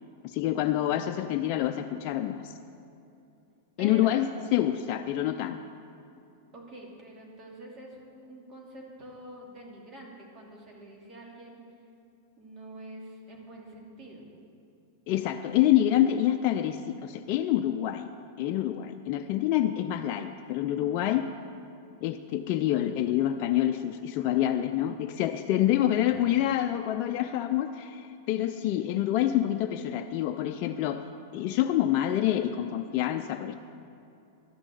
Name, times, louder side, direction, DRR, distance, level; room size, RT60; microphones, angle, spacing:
voice 1, 0.2-2.5 3.8-5.6 15.1-18.1 18.4-21.3 22.0-31.0 31.3-33.6, left 12 dB, 50° left, 6 dB, 0.5 m, -27 dB
voice 2, 3.8-4.2 6.5-11.6 12.4-14.3 25.5-25.7 26.1-26.2, right 1 dB, 35° right, -2 dB, 2.8 m, -46 dB
12.5 x 6.1 x 8.3 m, 2.7 s
hypercardioid pair, 110°, 0 cm